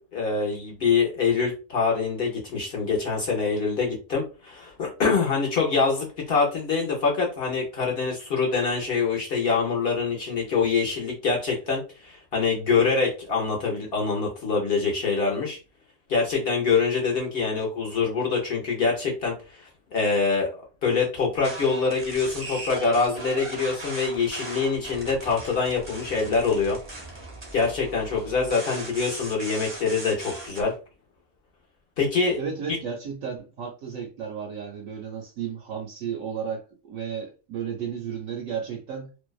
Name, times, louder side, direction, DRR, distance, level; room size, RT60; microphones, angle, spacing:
voice 1, 0.1-15.6 16.1-26.8 27.5-30.7 32.0-32.4, left 4 dB, 60° left, -1 dB, 0.6 m, -25 dB
sound 1, 21.4-30.6, right 2 dB, 35° right, 0.5 m, -39 dB
voice 2, 32.4-39.1, right 7 dB, 70° right, 1 dB, 0.9 m, -33 dB
2.6 x 2.1 x 2.3 m, 0.33 s
omnidirectional pair, 1.6 m